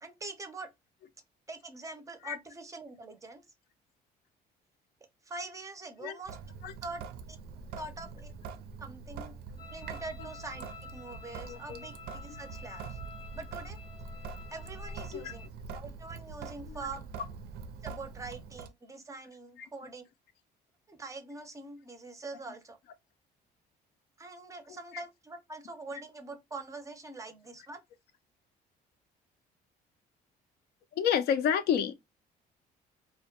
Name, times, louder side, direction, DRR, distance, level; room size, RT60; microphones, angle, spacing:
voice 1, 0.0-0.7 1.5-3.4 5.2-6.4 6.8-7.0 7.3-7.4 7.8-8.3 8.8-13.0 13.3-13.8 14.5-15.5 15.7-17.1 17.8-20.0 20.9-22.8 24.2-27.8, right 3 dB, 20° right, 0.5 m, -44 dB
Sink (filling or washing) / Drip, 6.3-18.7, right 5 dB, 70° right, 0.4 m, -44 dB
sound 1, 9.6-15.5, left 6 dB, 30° left, 0.6 m, -51 dB
voice 2, 11.5-11.8 15.1-15.3 16.7-16.8 19.6-19.7 30.9-31.9, left 8 dB, 70° left, 0.4 m, -29 dB
2.1 x 2.1 x 2.7 m
cardioid pair, 110°, 17 cm